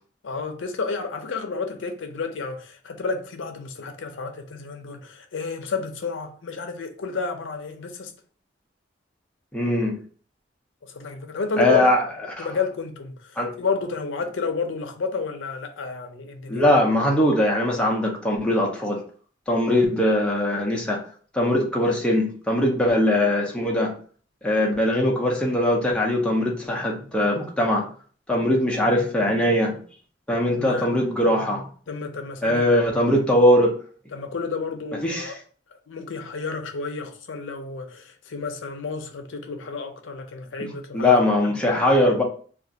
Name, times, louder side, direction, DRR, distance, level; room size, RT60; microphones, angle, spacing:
voice 1, 0.2-8.1 10.8-11.9 12.4-16.6 30.6-30.9 31.9-32.6 33.1-33.2 34.1-35.3 35.9-41.6, left 4 dB, 85° left, 0.5 m, -31 dB
voice 2, 9.5-10.0 11.6-12.0 12.4-12.5 13.4-13.5 16.5-19.0 19.5-21.0 21.3-23.9 24.4-27.9 28.3-29.8 30.3-31.6 32.4-33.7 35.0-35.3 40.6-40.7 40.9-42.2, left 1 dB, 5° left, 0.5 m, -21 dB
2.5 x 2.4 x 3.8 m
head